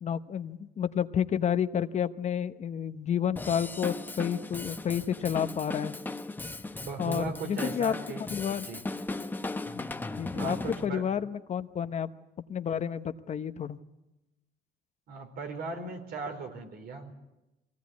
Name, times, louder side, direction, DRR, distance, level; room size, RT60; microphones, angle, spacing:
voice 1, 0.0-5.9 7.0-7.9 8.3-8.7 9.7-10.6 10.8-12.1 12.5-13.8, left 8 dB, 45° left, 10 dB, 0.9 m, -30 dB
Drum kit / Drum, 3.4-10.9, left 2 dB, 10° left, 0.8 m, -37 dB
voice 2, 6.7-8.2 8.6-8.8 10.3-11.2 15.1-17.1, right 4 dB, 65° right, 6 dB, 4.2 m, -38 dB
23.0 x 17.0 x 9.5 m, 0.98 s
cardioid pair, 110°, 17 cm